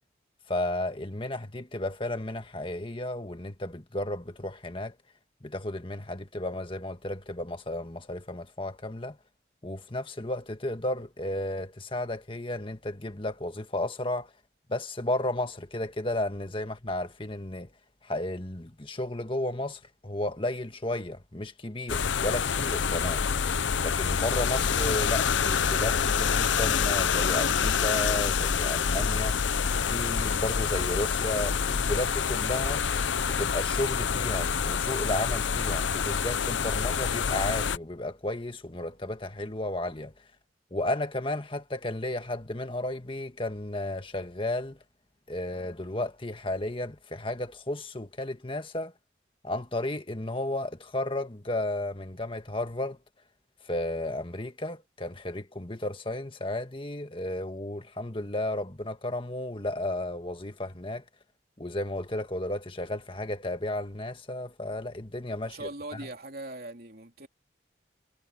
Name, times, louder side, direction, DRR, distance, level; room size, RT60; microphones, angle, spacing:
voice 1, 0.5-4.9 5.4-9.2 9.6-14.3 14.7-17.7 18.0-23.3 23.8-29.4 29.9-32.8 33.3-40.1 40.7-44.8 45.3-48.9 49.4-53.0 53.6-61.0 61.6-66.1, left 1 dB, 30° left, 1.7 m, -33 dB
sound 1, 21.9-37.8, left 6 dB, 80° left, 0.7 m, -27 dB
voice 2, 65.4-67.3, right 2 dB, 50° right, 3.5 m, -40 dB
head